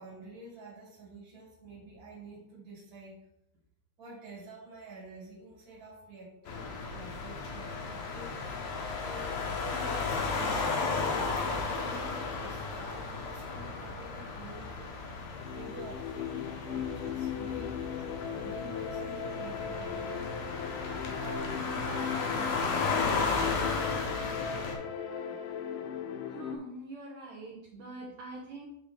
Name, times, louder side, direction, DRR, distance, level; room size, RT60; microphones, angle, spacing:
voice 1, 0.0-3.2 4.0-8.4 9.0-15.0 15.5-22.9, right 2 dB, 30° right, -6 dB, 2.1 m, -48 dB
sound 1, 6.5-24.7, left 4 dB, 70° left, 1.7 m, -34 dB
sound 2, 15.4-26.6, left 8 dB, 90° left, 1.9 m, -37 dB
voice 2, 26.3-28.7, right 2 dB, 70° right, -3 dB, 1.8 m, -44 dB
9.7 x 3.4 x 3.4 m, 0.77 s
omnidirectional pair, 4.5 m